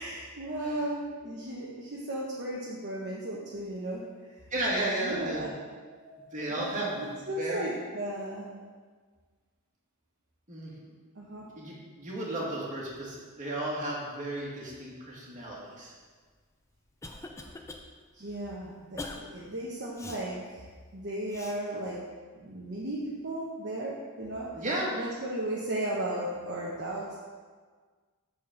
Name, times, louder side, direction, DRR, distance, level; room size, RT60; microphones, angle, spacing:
voice 1, 0.0-4.0 5.0-5.5 5.9-6.2 6.6-6.7 6.9-8.6 11.2-11.5 18.1-20.6 20.9-22.0 22.3-24.5 25.0-27.2, right 1 dB, 50° right, -5 dB, 1.1 m, -35 dB
voice 2, 4.5-5.5 6.3-7.7 10.5-10.7 11.6-15.9 24.6-25.0, right 1 dB, 35° right, -5 dB, 2.2 m, -34 dB
Cough, 16.4-17.8 18.3-18.4 19.0-19.2 20.0-20.2 21.3-21.6, left 2 dB, 15° left, 0.5 m, -42 dB
8.4 x 4.4 x 6.8 m, 1.5 s
head